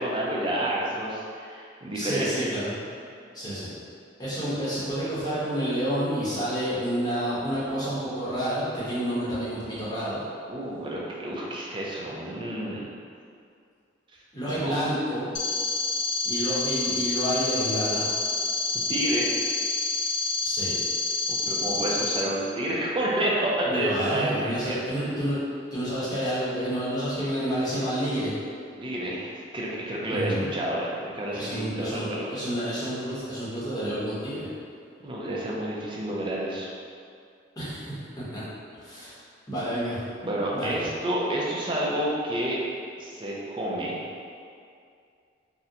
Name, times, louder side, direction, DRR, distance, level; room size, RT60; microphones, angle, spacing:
voice 1, 0.0-2.3 10.5-12.9 14.5-14.8 18.9-19.3 21.3-25.2 28.8-32.3 35.0-36.7 40.2-42.6 43.0-44.0, right 1 dB, 25° right, -5 dB, 0.5 m, -29 dB
voice 2, 1.9-2.8 3.3-3.7 4.2-10.2 14.3-15.3 16.2-18.1 20.4-20.8 23.6-25.4 25.7-28.3 30.1-30.5 31.3-34.5 37.6-38.4 38.8-39.1 39.5-40.0 40.5-40.7, equal, 20° left, -10 dB, 0.9 m, -29 dB
sound 1, 15.3-22.2, left 3 dB, 65° left, 0.4 m, -28 dB
3.7 x 2.1 x 2.7 m, 2.4 s
head